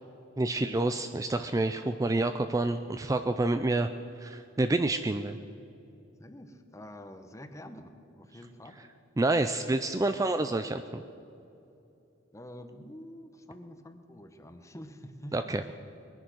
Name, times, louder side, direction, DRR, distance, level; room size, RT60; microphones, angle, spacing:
voice 1, 0.4-5.4 9.2-11.0 15.3-15.6, right 2 dB, 15° right, 9 dB, 0.4 m, -28 dB
voice 2, 6.2-8.9 12.3-15.5, equal, 15° left, 8 dB, 0.9 m, -47 dB
21.0 x 10.0 x 6.3 m, 2.7 s
head